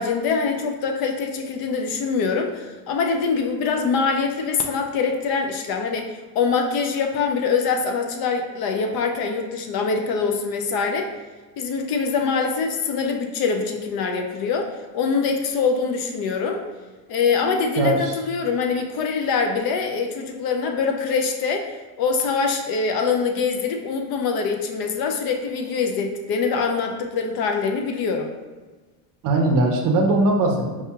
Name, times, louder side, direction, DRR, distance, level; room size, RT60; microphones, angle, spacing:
voice 1, 0.0-11.1 11.6-16.6 17.1-21.7 22.0-28.3, left 5 dB, 50° left, 3 dB, 0.5 m, -24 dB
voice 2, 17.8-18.1 29.2-30.8, right 2 dB, 40° right, 2 dB, 0.6 m, -20 dB
4.7 x 2.7 x 2.3 m, 1.3 s
supercardioid pair, 110°, 49 cm